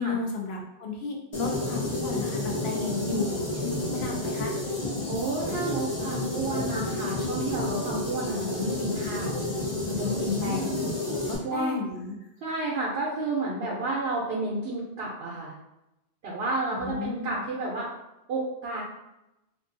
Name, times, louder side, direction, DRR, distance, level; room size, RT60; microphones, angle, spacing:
voice 1, 0.0-4.5 10.2-10.9 11.3-12.2 16.7-17.5, left 3 dB, 70° left, 1 dB, 0.8 m, -34 dB
sound 1, 1.3-11.4, left 2 dB, 40° left, 0.4 m, -30 dB
voice 2, 2.7-3.3 5.1-9.3 9.9-10.7 11.4-11.8 12.4-15.5 16.2-17.9 18.3-18.8, right 2 dB, 65° right, -5 dB, 0.8 m, -31 dB
2.6 x 2.3 x 2.5 m, 0.92 s
omnidirectional pair, 1.2 m